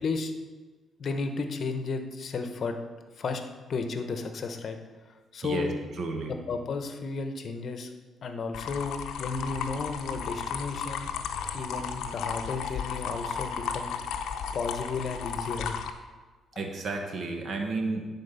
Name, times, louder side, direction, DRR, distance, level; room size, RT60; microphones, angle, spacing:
voice 1, 1.0-2.7 3.2-3.4 3.7-4.8 5.3-5.7 6.3-7.9 8.2-11.1 11.5-13.9 14.5-15.7, left 4 dB, 55° left, 7 dB, 0.9 m, -33 dB
voice 2, 6.0-6.3 16.6-18.1, right 3 dB, 55° right, 3 dB, 1.3 m, -32 dB
sound 1, 8.5-15.9, left 6 dB, 85° left, 0.6 m, -34 dB
9.8 x 4.4 x 5.6 m, 1.3 s
cardioid pair, 90°, 0 cm